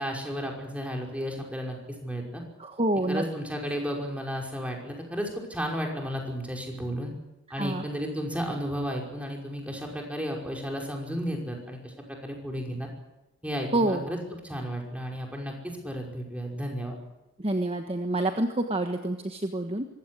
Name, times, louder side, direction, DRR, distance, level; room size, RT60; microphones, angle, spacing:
voice 1, 0.0-1.8 2.0-2.4 3.1-7.1 7.5-11.9 12.2-12.9 13.4-16.9, equal, 5° right, 0 dB, 5.5 m, -33 dB
voice 2, 2.6-3.2 7.6-7.8 13.7-14.0 17.4-19.9, right 1 dB, 30° right, 5 dB, 1.4 m, -27 dB
25.0 x 16.0 x 10.0 m, 0.98 s
head